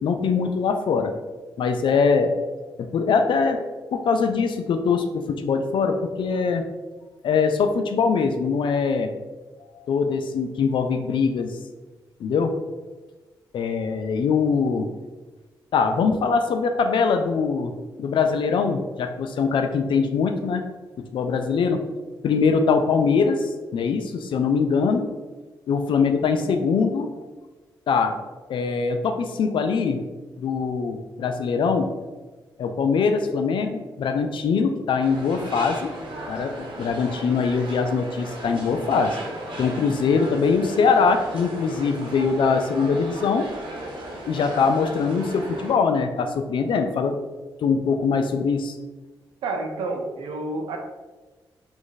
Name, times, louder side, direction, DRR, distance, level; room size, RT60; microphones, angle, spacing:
voice 1, 0.0-1.1 1.6-2.3 2.8-3.6 3.9-6.6 7.2-9.1 9.7-11.6 12.2-12.5 13.5-14.9 15.7-17.7 18.0-20.6 21.1-21.8 22.2-25.1 25.7-27.3 27.9-28.1 28.5-30.0 30.4-31.9 32.6-35.9 36.3-39.2 39.6-43.5 44.3-47.2 47.6-48.8, left 5 dB, 65° left, 6 dB, 0.4 m, -22 dB
sound 1, 35.0-45.7, right 1 dB, 70° right, 0.9 m, -36 dB
voice 2, 49.4-50.8, right 2 dB, 85° right, 2 dB, 0.6 m, -29 dB
2.9 x 2.5 x 3.9 m, 1.2 s
supercardioid pair, 55°, 9 cm